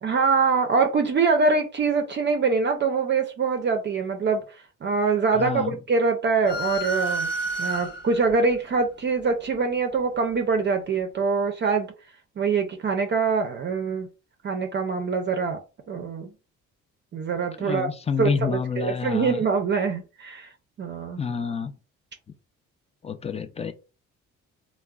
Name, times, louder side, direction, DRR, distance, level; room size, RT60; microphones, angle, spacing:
voice 1, 0.0-7.3 7.6-11.9 12.4-14.1 14.4-15.6 15.9-16.3 17.1-17.9 18.2-20.5 20.8-21.2, right 4 dB, 40° right, 0.4 m, -24 dB
voice 2, 5.3-5.8 17.6-19.4 21.2-21.7 23.0-23.7, left 6 dB, 20° left, 0.3 m, -28 dB
sound 1, 6.5-8.3, right 2 dB, 35° left, 0.8 m, -29 dB
3.5 x 2.0 x 2.3 m
cardioid pair, 90°, 30 cm